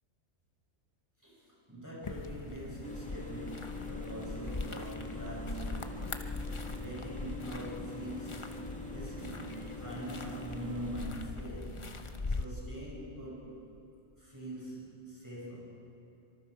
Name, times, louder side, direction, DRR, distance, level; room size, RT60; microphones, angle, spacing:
voice 1, 1.2-11.9 12.3-13.5 14.2-15.8, right 1 dB, 15° right, -6 dB, 6.6 m, -43 dB
sound 1, 2.0-12.5, left 3 dB, 25° left, 0.9 m, -41 dB
sound 2, 2.8-11.1, left 2 dB, 5° left, 1.9 m, -44 dB
25.5 x 25.0 x 4.9 m, 2.7 s
omnidirectional pair, 1.3 m